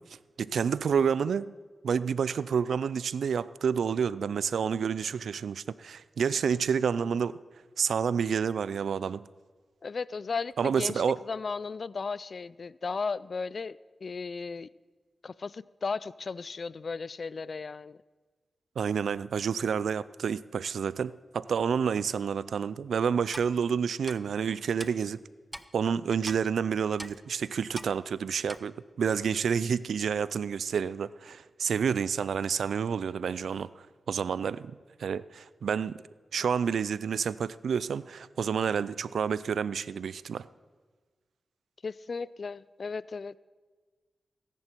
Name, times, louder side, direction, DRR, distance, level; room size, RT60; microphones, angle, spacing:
voice 1, 0.4-1.5 1.8-7.3 7.8-9.3 10.6-11.2 18.8-25.2 25.7-33.7 34.1-36.0 36.3-40.5, right 7 dB, 85° right, 0.3 m, -29 dB
voice 2, 9.8-14.7 15.2-18.0 41.8-43.4, left 4 dB, 60° left, 0.3 m, -35 dB
Clock, 23.3-23.5 24.1-24.2 24.8-24.9 25.5-25.7 26.3-26.4 27.0-27.2 27.8-27.9 28.5-28.6, equal, 5° right, 0.7 m, -40 dB
18.0 x 10.5 x 4.5 m
cardioid pair, 50°, 0 cm